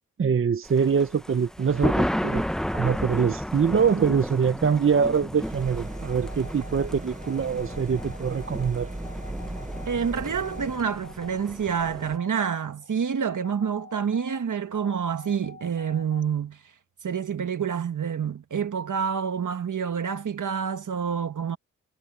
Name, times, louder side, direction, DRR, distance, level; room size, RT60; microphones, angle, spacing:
voice 1, 0.2-2.4 2.7-8.9, right 6 dB, 40° right, 0.7 m, -24 dB
Thunder, 0.6-12.2, equal, ahead, 0.7 m, -33 dB
sound 1, 5.4-10.8, right 2 dB, 25° right, 6.4 m, -38 dB
sound 2, 5.9-16.3, left 4 dB, 35° left, 4.8 m, -49 dB
voice 2, 9.9-16.6 17.0-21.6, right 7 dB, 70° right, 1.6 m, -28 dB
cardioid pair, 65°, 31 cm